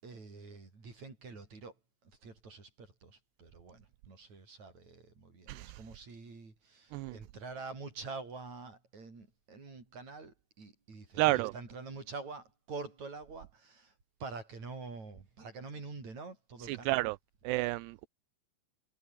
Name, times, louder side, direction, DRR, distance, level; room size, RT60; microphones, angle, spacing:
voice 1, 0.0-1.8 2.0-13.9 14.2-17.0, right 4 dB, 40° right, 7.7 m, -46 dB
voice 2, 5.5-5.9 6.9-7.2 11.2-11.5 16.6-17.2 17.4-18.1, right 20 dB, 80° right, 2.8 m, -31 dB
omnidirectional pair, 5.0 m